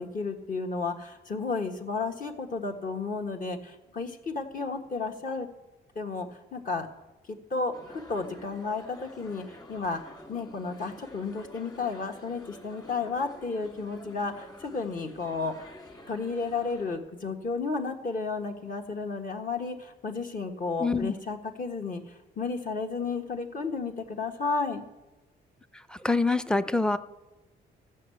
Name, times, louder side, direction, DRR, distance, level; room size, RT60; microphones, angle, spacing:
voice 1, 0.0-5.5 5.9-6.9 7.3-15.7 16.1-24.8, left 4 dB, 45° left, 3 dB, 1.5 m, -33 dB
sound 1, 7.7-17.0, left 1 dB, 20° left, 1.8 m, -49 dB
voice 2, 20.8-21.1 25.9-27.0, left 3 dB, 5° left, 12 dB, 0.5 m, -25 dB
14.0 x 5.7 x 8.4 m, 1.1 s
cardioid pair, 90°, 20 cm